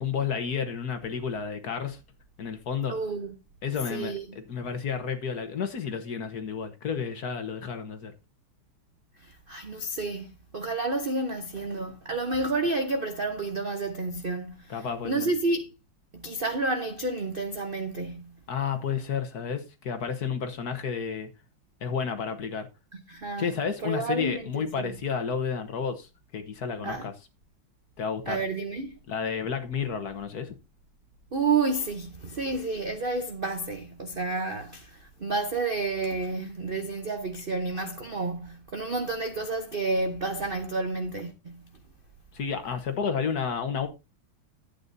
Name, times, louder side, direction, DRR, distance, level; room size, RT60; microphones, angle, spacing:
voice 1, 0.0-2.0 2.4-3.0 3.6-8.1 14.7-15.3 18.5-21.3 21.8-22.7 23.4-26.1 26.3-27.1 28.0-28.4 29.1-30.6 42.3-43.9, left 6 dB, 55° left, 1.5 m, -31 dB
voice 2, 2.9-3.3 3.9-4.3 9.2-15.7 16.1-18.4 22.9-23.5 23.8-25.0 26.8-27.1 28.3-29.0 31.3-41.6, right 3 dB, 70° right, 0.5 m, -30 dB
11.5 x 8.9 x 2.7 m
omnidirectional pair, 2.3 m